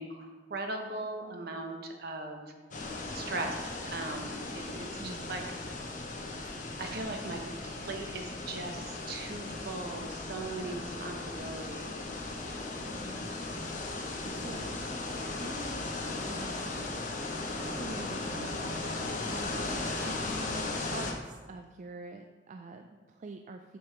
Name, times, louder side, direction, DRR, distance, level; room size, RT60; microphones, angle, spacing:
voice 1, 0.0-2.5 3.1-5.4 6.8-12.0 14.2-14.7 20.0-20.7, right 2 dB, 60° right, 3 dB, 0.9 m, -39 dB
sound 1, 2.7-21.1, left 2 dB, 45° left, 0.9 m, -37 dB
voice 2, 5.0-5.3 12.9-14.7 15.2-15.9 16.2-16.9 17.5-19.9 20.7-23.8, right 3 dB, 45° right, 5 dB, 0.3 m, -46 dB
6.5 x 5.3 x 4.5 m, 1.3 s
head